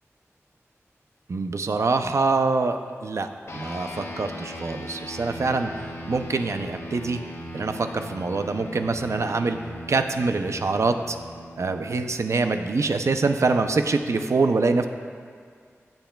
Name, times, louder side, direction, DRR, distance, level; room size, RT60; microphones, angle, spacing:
voice 1, 1.3-5.7 6.1-7.2 7.5-9.6 9.9-11.2 11.6-14.9, right 3 dB, 75° right, 7 dB, 0.5 m, -24 dB
sound 1, 3.5-13.2, left 1 dB, 65° left, 1.0 m, -39 dB
15.5 x 7.9 x 2.3 m, 2.1 s
wide cardioid pair, 75°, 5 cm